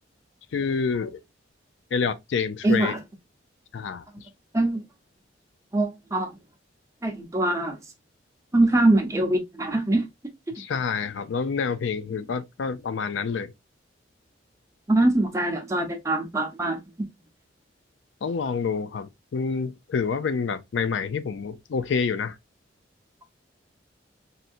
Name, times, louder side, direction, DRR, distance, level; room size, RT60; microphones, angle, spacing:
voice 1, 0.5-1.2 1.9-2.9 3.7-4.0 10.6-13.5 18.2-22.3, left 5 dB, 75° left, 0.4 m, -27 dB
voice 2, 2.6-3.0 4.5-4.8 5.7-6.3 7.0-7.8 8.5-10.0 14.9-17.1, right 2 dB, 15° right, 0.7 m, -23 dB
4.1 x 2.6 x 2.4 m
head